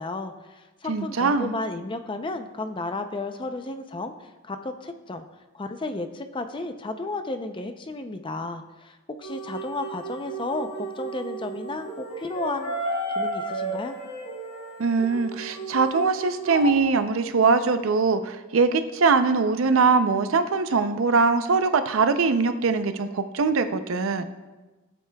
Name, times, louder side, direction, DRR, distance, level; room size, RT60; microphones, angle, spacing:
voice 1, 0.0-5.2 5.5-12.7 13.2-14.0, left 2 dB, 25° left, 7 dB, 0.5 m, -33 dB
voice 2, 0.9-1.6 14.8-24.2, right 4 dB, 70° right, 9 dB, 0.5 m, -22 dB
sound 1, 9.2-16.7, right 2 dB, 75° left, 2.0 m, -33 dB
16.5 x 8.2 x 2.3 m, 1.2 s
head